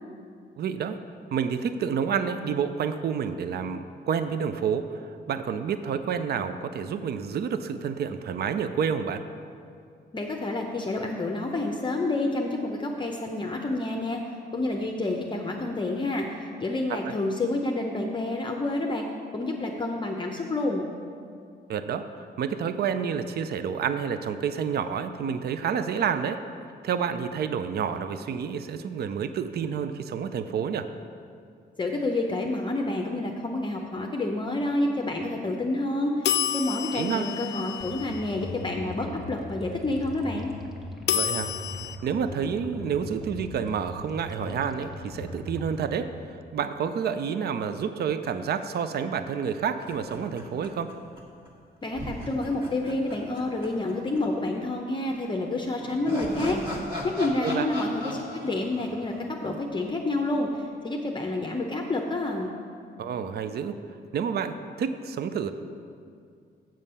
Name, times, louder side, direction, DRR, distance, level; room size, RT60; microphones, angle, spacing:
voice 1, 0.6-1.0 1.3-9.2 17.1-17.2 21.7-26.4 26.8-30.9 36.9-37.3 41.1-41.5 42.0-50.9 57.4-57.7 63.0-63.8 64.1-65.5, right 7 dB, 60° right, 10 dB, 0.4 m, -29 dB
voice 2, 10.1-14.2 14.5-19.0 19.3-20.9 31.8-40.5 51.8-56.6 57.0-62.5, left 2 dB, 25° left, 1 dB, 0.6 m, -29 dB
sound 1, 36.2-38.5 41.1-42.0, left 10 dB, 70° left, 0.5 m, -29 dB
sound 2, 37.8-45.8, left 1 dB, ahead, 1.0 m, -40 dB
sound 3, 49.8-51.2 51.5-51.6 51.9-54.2 54.4-54.5 55.5-59.9, left 1 dB, 25° right, 1.5 m, -37 dB
7.5 x 7.1 x 5.5 m, 2.3 s
cardioid pair, 105°, 18 cm